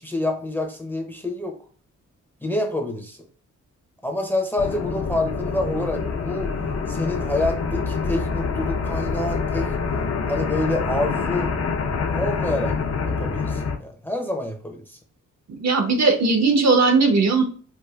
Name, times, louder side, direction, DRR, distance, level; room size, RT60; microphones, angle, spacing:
voice 1, 0.0-1.6 2.4-3.2 4.0-6.5 6.9-9.7 10.3-11.6 12.1-12.8 13.1-15.0, left 1 dB, 5° left, 4 dB, 0.6 m, -27 dB
sound 1, 4.6-13.8, left 4 dB, 50° left, 0.6 m, -26 dB
voice 2, 15.6-17.4, right 4 dB, 55° right, 4 dB, 0.8 m, -18 dB
4.6 x 2.4 x 2.3 m, 0.43 s
cardioid pair, 70°, 31 cm